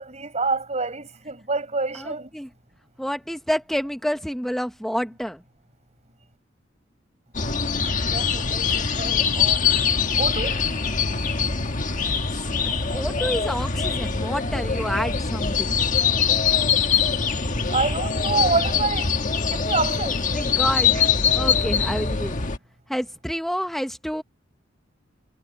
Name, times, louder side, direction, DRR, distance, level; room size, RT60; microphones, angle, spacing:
voice 1, 0.0-2.3 8.1-9.6 10.2-10.6 17.7-19.1 19.4-20.2, right 4 dB, 35° right, 7.8 m, -27 dB
voice 2, 1.9-2.5 3.0-5.4 12.6-15.8 19.9-20.0 20.3-22.4 22.9-24.2, equal, ahead, 1.0 m, -29 dB
sound 1, 7.3-22.6, left 6 dB, 45° left, 1.5 m, -23 dB
head